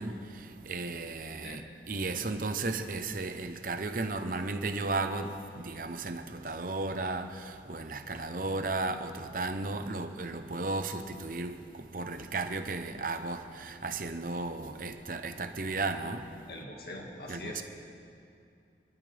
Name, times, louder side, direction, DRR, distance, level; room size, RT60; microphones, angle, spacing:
voice 1, 0.0-1.6 1.9-16.3 17.3-17.6, right 3 dB, 50° right, 0.8 m, -35 dB
voice 2, 16.5-17.6, left 1 dB, 60° left, 2.0 m, -43 dB
27.0 x 13.0 x 3.5 m
head